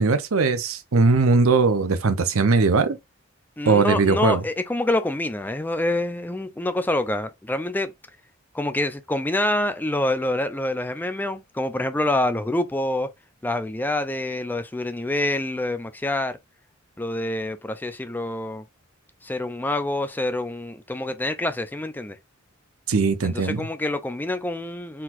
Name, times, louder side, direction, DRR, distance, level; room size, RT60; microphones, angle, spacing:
voice 1, 0.0-3.0 3.7-4.4 22.9-23.7, right 4 dB, 80° right, 0.7 m, -20 dB
voice 2, 3.6-7.9 8.5-13.1 13.4-16.4 17.0-18.6 19.2-22.2 23.2-25.0, left 1 dB, 10° left, 0.4 m, -26 dB
4.4 x 4.0 x 2.5 m
head